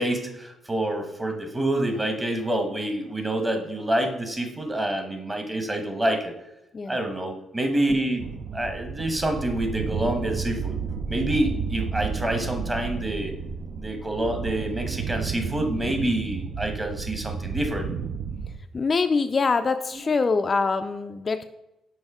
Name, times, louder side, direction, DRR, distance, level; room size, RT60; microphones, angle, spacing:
voice 1, 0.0-6.3 6.9-8.2 8.5-10.8 11.1-13.3 13.8-17.9, right 1 dB, 20° right, 5 dB, 1.3 m, -27 dB
sound 1, 8.2-18.6, right 5 dB, 60° right, 0.5 m, -32 dB
voice 2, 18.7-21.4, left 4 dB, 35° left, 8 dB, 0.3 m, -24 dB
6.3 x 4.1 x 4.8 m, 0.93 s
cardioid pair, 90°, 0 cm